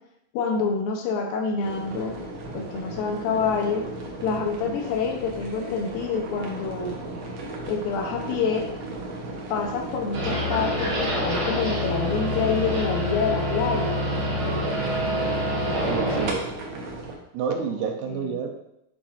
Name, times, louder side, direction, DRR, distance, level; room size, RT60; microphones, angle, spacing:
voice 1, 0.3-2.2 2.5-3.8 4.2-7.0 7.7-8.7 9.5-14.0 17.6-18.4, left 5 dB, 75° left, 2 dB, 2.5 m, -27 dB
sound 1, 1.6-17.1, right 2 dB, 70° right, 1.5 m, -35 dB
sound 2, 10.1-16.3, left 1 dB, 35° right, 1.7 m, -26 dB
voice 2, 15.9-16.5 17.3-18.6, right 6 dB, 85° right, 3 dB, 2.8 m, -29 dB
8.6 x 5.8 x 2.6 m, 0.81 s
omnidirectional pair, 4.3 m